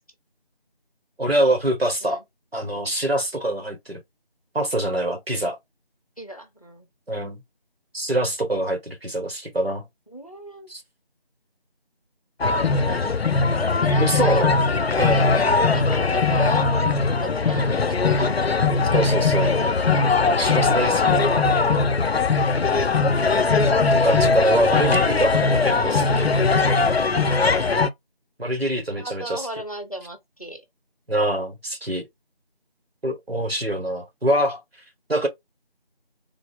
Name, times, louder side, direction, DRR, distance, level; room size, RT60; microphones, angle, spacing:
voice 1, 1.2-2.2 2.5-4.0 4.5-5.6 7.1-7.4 7.9-9.8 10.7-10.8 14.0-14.5 15.0-15.2 18.9-19.6 20.3-21.6 23.9-26.3 28.4-29.5 31.1-32.1 33.0-34.6 35.1-35.3, right 1 dB, 80° right, 1.7 m, -24 dB
voice 2, 6.2-6.9 10.1-10.7 12.5-13.2 13.6-14.4 14.9-16.7 17.2-18.4 18.9-19.2 27.4-27.8 29.0-30.6, right 1 dB, 40° left, 0.7 m, -37 dB
sound 1, 12.4-27.9, left 4 dB, 85° left, 0.6 m, -20 dB
3.7 x 2.0 x 3.4 m
figure-of-eight pair, 175°, 30 cm